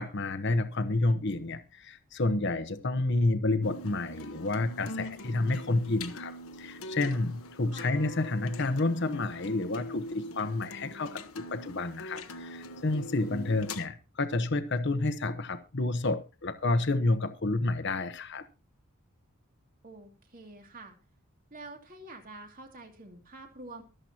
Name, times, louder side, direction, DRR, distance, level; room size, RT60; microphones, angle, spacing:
voice 1, 0.0-18.5, left 2 dB, 55° left, 1.0 m, -30 dB
sound 1, 3.6-13.9, left 2 dB, 80° left, 1.2 m, -43 dB
voice 2, 13.3-13.7 19.8-20.9 21.5-23.8, right 2 dB, 40° right, 2.6 m, -46 dB
23.5 x 7.9 x 2.9 m
head